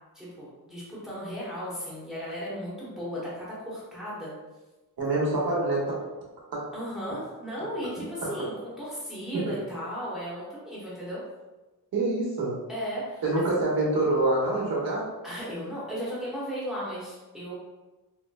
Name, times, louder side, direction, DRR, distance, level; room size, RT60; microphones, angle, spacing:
voice 1, 0.1-4.3 6.7-11.2 12.7-13.4 15.2-17.5, equal, ahead, -8 dB, 0.9 m, -35 dB
voice 2, 5.0-6.0 6.5-6.7 11.9-12.6 13.2-15.1, right 2 dB, 70° right, -4 dB, 1.0 m, -26 dB
3.9 x 2.1 x 2.2 m, 1.2 s
wide cardioid pair, 140°, 37 cm